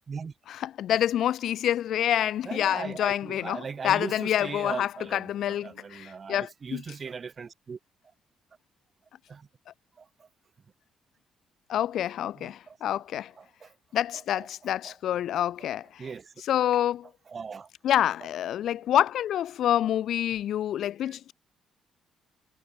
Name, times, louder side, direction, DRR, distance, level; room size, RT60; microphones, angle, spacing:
voice 1, 0.6-6.8 11.7-13.3 13.9-16.0 16.5-17.1 17.8-21.3, left 11 dB, 75° left, 0.8 m, -27 dB
voice 2, 2.4-7.8 9.3-9.5 10.0-10.3 12.3-13.0 13.4-13.7 14.1-15.0 16.0-16.3 17.3-17.7 18.2-18.3 21.1-21.2, right 5 dB, 40° right, 6.8 m, -39 dB
cardioid pair, 90°, 0 cm